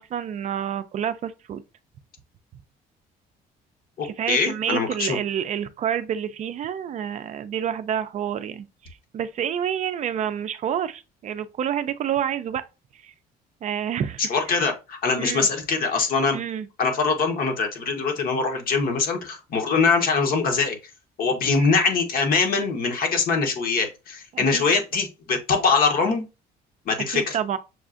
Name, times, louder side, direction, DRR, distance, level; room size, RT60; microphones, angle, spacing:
voice 1, 0.0-1.6 4.0-12.6 13.0-13.1 13.6-14.2 14.5-14.6 15.2-15.5 16.3-16.7 24.3-24.6 27.1-27.6, right 9 dB, 45° right, 0.4 m, -28 dB
voice 2, 4.0-5.2 14.3-16.4 16.8-20.8 21.2-26.2 26.9-27.4, left 4 dB, 60° left, 1.0 m, -23 dB
6.2 x 2.4 x 2.4 m
cardioid pair, 110°, 17 cm